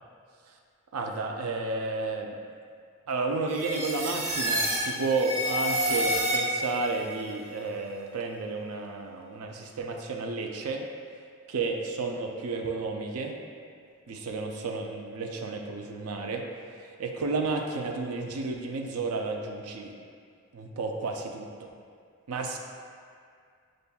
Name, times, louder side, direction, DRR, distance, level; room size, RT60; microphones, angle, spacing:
voice 1, 0.9-2.4 3.1-10.8 11.5-13.4 14.1-16.4 17.0-19.9 20.5-21.7 22.3-22.6, right 3 dB, 90° right, 2 dB, 0.4 m, -32 dB
sound 1, 3.5-6.9, equal, 30° right, 0.5 m, -28 dB
6.6 x 2.5 x 2.3 m, 2.2 s
head